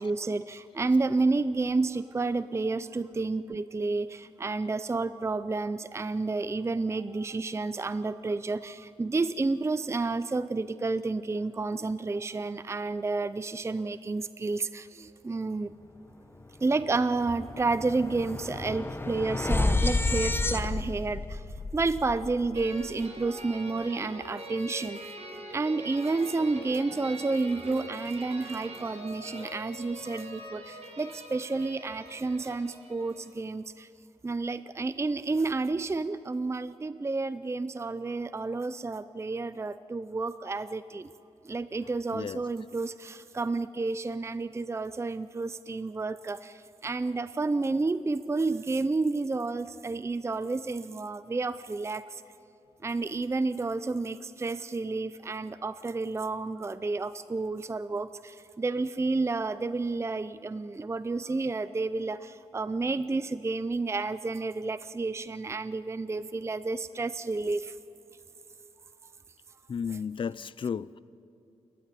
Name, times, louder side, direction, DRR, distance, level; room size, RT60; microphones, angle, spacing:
voice 1, 0.0-15.7 16.6-21.4 21.7-25.0 25.5-33.9 34.2-41.1 41.4-52.2 52.8-67.7 69.9-70.0, right 3 dB, 20° right, 0.5 m, -30 dB
sound 1, 16.3-16.5 16.8-23.0, left 2 dB, 20° left, 1.0 m, -31 dB
sound 2, 22.6-33.3, right 1 dB, 60° right, 5.1 m, -43 dB
voice 2, 69.7-71.0, left 6 dB, 45° left, 0.4 m, -33 dB
28.5 x 13.0 x 9.8 m
cardioid pair, 90°, 12 cm